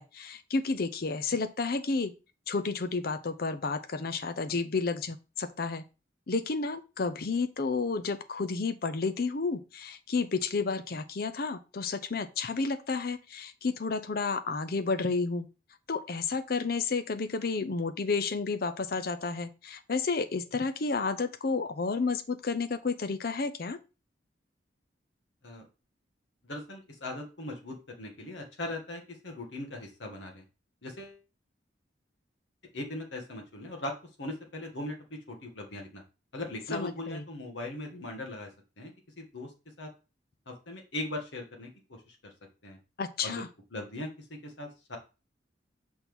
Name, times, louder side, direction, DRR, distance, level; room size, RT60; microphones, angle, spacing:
voice 1, 0.0-2.1 2.5-5.8 6.3-15.5 15.9-23.8 36.7-37.2 43.0-43.5, left 4 dB, 55° left, 10 dB, 0.6 m, -31 dB
voice 2, 26.4-30.4 30.8-31.2 32.7-33.9 34.2-36.0 36.3-38.5 38.8-39.5 39.8-39.9 40.5-42.3 42.6-42.8 43.2-43.4 43.7-45.0, left 1 dB, 80° left, 2 dB, 1.6 m, -39 dB
6.1 x 4.3 x 3.6 m, 0.30 s
head